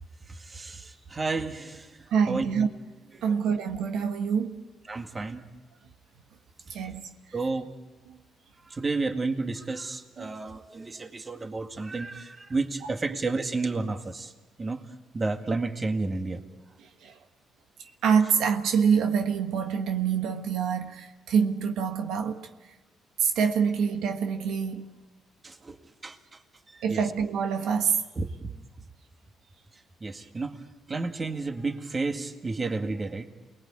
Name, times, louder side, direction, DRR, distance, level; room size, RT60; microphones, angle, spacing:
voice 1, 0.3-2.7 3.1-3.4 4.9-5.4 6.7-6.8 7.3-7.7 8.6-14.3 14.6-16.4 25.4-25.8 26.0-26.4 26.7-27.0 28.2-28.6 29.7-33.3, right 3 dB, 30° right, 2.0 m, -32 dB
voice 2, 2.1-2.7 3.2-4.6 6.7-7.1 8.1-8.2 10.2-10.3 17.0-17.2 18.0-22.5 23.2-25.0 26.8-28.0, right 6 dB, 85° right, 1.4 m, -26 dB
28.5 x 20.0 x 8.8 m
cardioid pair, 90°, 0 cm